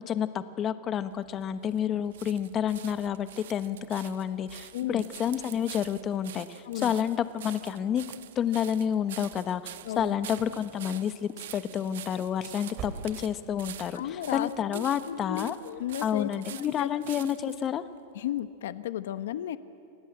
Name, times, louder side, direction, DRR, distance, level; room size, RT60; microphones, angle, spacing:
voice 1, 0.1-8.0 8.4-15.6 16.0-17.8, left 9 dB, 25° left, 12 dB, 1.0 m, -30 dB
sound 1, 1.1-17.7 18.4-18.5, right 12 dB, 80° right, 1.1 m, -46 dB
voice 2, 4.7-5.0 6.6-7.0 9.8-10.2 13.9-16.9 18.1-19.6, left 12 dB, 80° left, 13 dB, 1.0 m, -34 dB
sound 2, 9.9-10.7 10.9-11.4 11.7-11.8 12.2-13.5 13.8-13.9 14.4-14.5, right 6 dB, 35° right, 3.1 m, -43 dB
28.5 x 19.0 x 8.7 m, 2.8 s
supercardioid pair, 155°, 0 cm